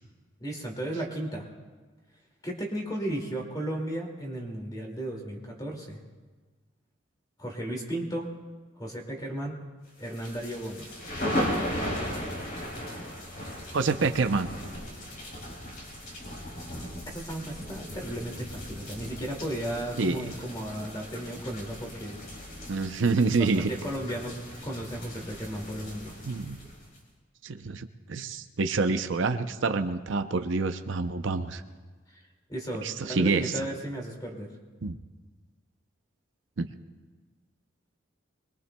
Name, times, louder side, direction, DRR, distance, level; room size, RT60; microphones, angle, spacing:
voice 1, 0.4-1.5 2.4-6.0 7.4-8.3 8.8-9.7 10.0-10.9 17.1-22.5 23.4-24.3 24.6-26.2 32.1-32.2 32.5-34.5, right 1 dB, 20° left, 0 dB, 2.3 m, -35 dB
sound 1, 10.0-27.0, equal, 45° left, 3.4 m, -37 dB
voice 2, 13.7-14.5 20.0-20.3 22.7-23.7 26.2-26.6 27.4-31.6 32.8-33.5 34.8-34.9 36.6-36.7, right 4 dB, 65° right, 8 dB, 0.6 m, -27 dB
24.5 x 21.5 x 2.3 m, 1.3 s
head